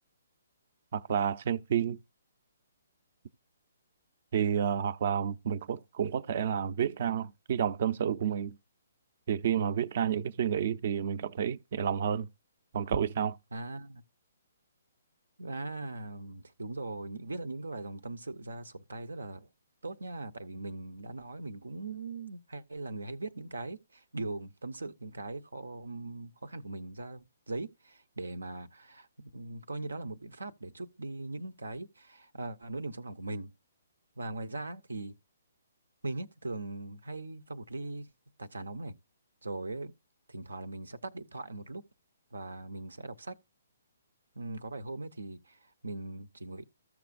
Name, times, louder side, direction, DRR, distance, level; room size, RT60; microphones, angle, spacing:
voice 1, 0.9-2.0 4.3-8.6 9.3-12.3 12.7-13.4, right 8 dB, 55° right, 0.6 m, -30 dB
voice 2, 13.5-14.0 15.4-19.5 19.8-33.5 34.2-35.1 36.0-38.1 38.4-38.9 39.4-39.9 40.3-41.9 42.3-43.4 44.4-46.6, right 2 dB, 90° right, 0.7 m, -40 dB
14.5 x 5.9 x 2.5 m
hypercardioid pair, 140°, 0 cm